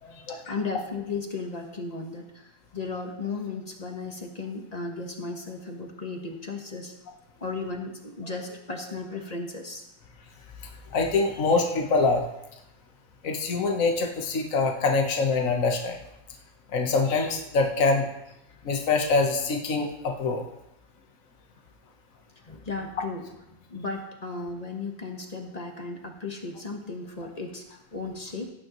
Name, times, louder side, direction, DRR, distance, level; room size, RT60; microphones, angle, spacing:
voice 1, 0.0-6.9 7.4-9.8 22.5-23.2 23.5-28.5, left 3 dB, 25° left, 2 dB, 1.3 m, -35 dB
voice 2, 10.9-12.2 13.2-16.0 16.7-18.0 18.6-20.4, left 3 dB, 60° left, 2 dB, 1.6 m, -24 dB
17.0 x 9.4 x 3.1 m, 0.85 s
omnidirectional pair, 1.6 m